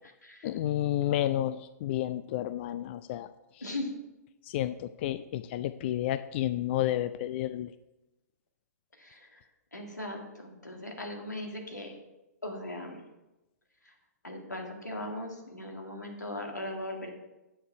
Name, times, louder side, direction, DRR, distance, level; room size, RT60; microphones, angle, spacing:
voice 1, 0.4-3.3 4.4-7.7, left 13 dB, 40° left, 13 dB, 0.3 m, -31 dB
voice 2, 3.6-3.9 9.0-12.0 12.4-13.0 13.8-13.9 14.2-17.2, left 1 dB, 90° left, 2 dB, 2.0 m, -39 dB
9.7 x 6.7 x 4.7 m, 0.99 s
figure-of-eight pair, 115°, 9 cm